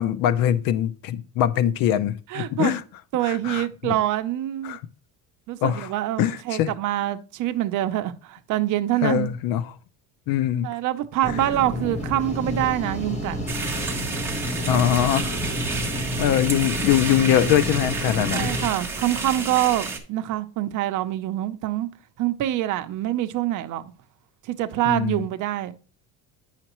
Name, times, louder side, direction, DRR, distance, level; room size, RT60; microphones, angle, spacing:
voice 1, 0.0-2.8 3.2-4.0 4.6-4.8 5.6-5.9 6.2-6.7 9.0-9.7 10.3-10.7 14.7-15.4 16.2-18.5 24.9-25.2, left 11 dB, 65° left, 0.6 m, -23 dB
voice 2, 2.3-2.8 3.1-4.8 5.5-9.3 10.6-13.4 18.3-21.9 22.2-23.9 24.5-25.7, right 14 dB, 55° right, 0.7 m, -25 dB
sound 1, 11.2-18.7, left 1 dB, 20° left, 1.2 m, -30 dB
sound 2, 13.5-20.0, right 3 dB, 5° right, 0.9 m, -30 dB
8.9 x 5.8 x 3.0 m
cardioid pair, 165°, 38 cm